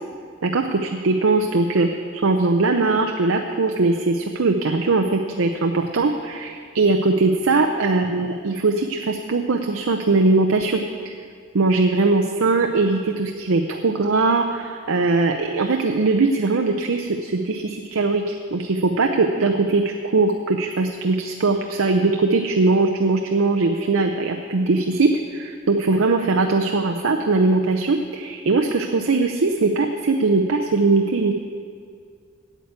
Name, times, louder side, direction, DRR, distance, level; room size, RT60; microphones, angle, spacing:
voice 1, 0.4-11.1 11.5-31.3, right 3 dB, 80° right, 4 dB, 0.6 m, -20 dB
9.1 x 8.0 x 8.2 m, 2.2 s
head